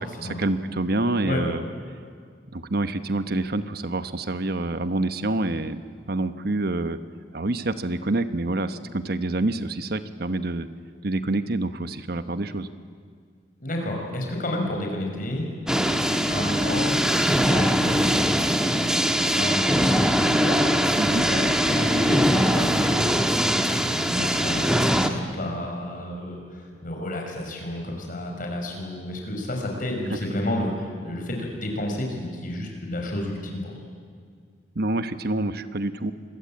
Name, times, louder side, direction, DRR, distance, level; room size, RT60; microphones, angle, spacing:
voice 1, 0.2-1.6 2.5-5.8 6.1-7.0 7.3-10.7 11.0-12.7 21.0-21.3 34.7-36.1, right 2 dB, 60° right, 11 dB, 1.1 m, -27 dB
voice 2, 1.2-1.6 13.6-20.6 20.9-33.7, left 1 dB, 50° left, 1 dB, 5.7 m, -31 dB
sound 1, 15.7-25.1, equal, 5° right, 1.4 m, -22 dB
26.5 x 22.0 x 8.8 m, 2.1 s
head